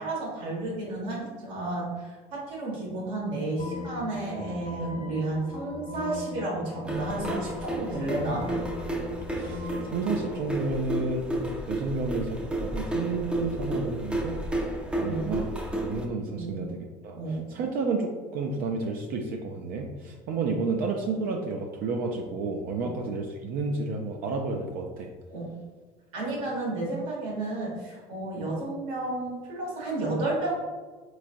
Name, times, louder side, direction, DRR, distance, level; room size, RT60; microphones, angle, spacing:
voice 1, 0.0-8.5 14.9-15.3 16.3-16.7 17.1-17.5 25.3-25.5 26.1-30.5, right 2 dB, 90° right, -4 dB, 1.3 m, -32 dB
sound 1, 3.6-10.4, left 3 dB, 45° left, 0.5 m, -38 dB
sound 2, 6.9-16.0, right 1 dB, 5° right, 0.5 m, -32 dB
voice 2, 9.3-11.3 11.7-14.4 15.0-15.5 15.9-17.2 17.5-25.1, right 3 dB, 60° right, 2 dB, 0.4 m, -31 dB
3.5 x 3.2 x 2.5 m, 1.4 s
supercardioid pair, 90°, 17 cm